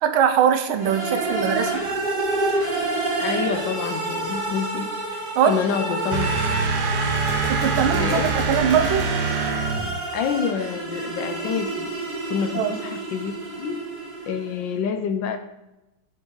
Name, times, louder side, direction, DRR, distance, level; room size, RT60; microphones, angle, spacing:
voice 1, 0.0-1.8 5.3-5.6 7.5-9.1 12.5-12.8, right 8 dB, 85° right, 8 dB, 1.5 m, -21 dB
sound 1, 0.8-14.6, right 2 dB, 50° right, 2.2 m, -28 dB
voice 2, 3.2-5.2 5.5-6.6 7.9-8.3 10.1-11.9 12.3-13.8 14.3-15.4, left 7 dB, 75° left, 7 dB, 1.2 m, -27 dB
sound 2, 6.1-10.0, right 5 dB, 65° right, 1.2 m, -25 dB
Gunshot gunfire, 7.2-10.3, right 1 dB, 35° left, 1.9 m, -35 dB
10.0 x 4.4 x 3.8 m, 0.94 s
omnidirectional pair, 2.2 m